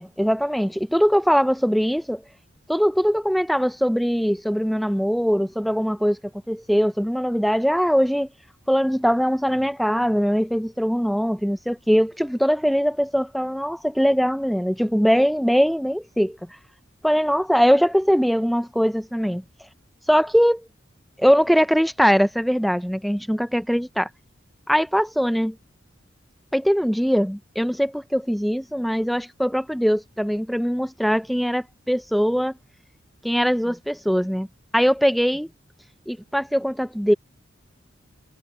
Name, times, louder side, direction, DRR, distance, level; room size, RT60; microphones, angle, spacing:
voice 1, 0.0-2.2 2.7-6.2 6.5-8.3 8.7-16.4 17.0-19.4 20.1-20.7 21.2-24.1 24.7-25.6 26.5-32.6 33.2-34.5 34.7-35.5 36.1-37.1, equal, ahead, 0.6 m, -21 dB
head